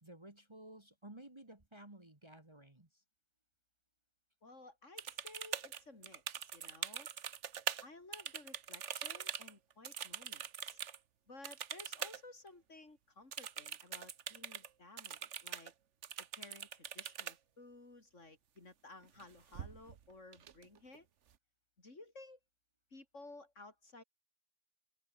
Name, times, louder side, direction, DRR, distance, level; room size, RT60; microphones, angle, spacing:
voice 1, 0.0-3.0, right 1 dB, 20° right, 2.0 m, -55 dB
voice 2, 4.4-7.1 7.8-10.8 11.3-15.7 16.2-21.1 21.8-22.4 22.9-24.0, left 2 dB, 65° left, 4.4 m, -56 dB
sound 1, 5.0-7.8 8.1-11.0 11.4-12.2 12.5-12.6 13.3-14.7 15.0-15.7 16.0-17.3 19.0-19.2 19.5-20.0 20.3-21.0, right 8 dB, 65° right, 1.3 m, -43 dB
omnidirectional pair, 1.4 m